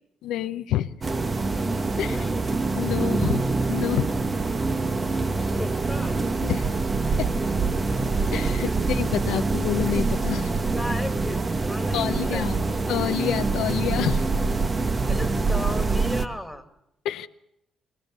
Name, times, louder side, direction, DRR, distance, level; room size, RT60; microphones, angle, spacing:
voice 1, 0.2-0.9 2.0-2.2 2.8-3.4 3.7-4.1 6.4-6.7 7.2-7.3 8.3-10.5 11.9-12.6 12.9-14.3 17.0-17.3, left 12 dB, 85° left, 9 dB, 0.8 m, -28 dB
sound 1, 1.0-16.3, right 3 dB, 30° right, 1.2 m, -25 dB
voice 2, 1.9-2.5 5.5-6.4 10.7-12.7 15.0-16.7, left 1 dB, ahead, 5 dB, 2.5 m, -35 dB
24.0 x 17.5 x 6.7 m, 0.81 s
cardioid pair, 90°, 0 cm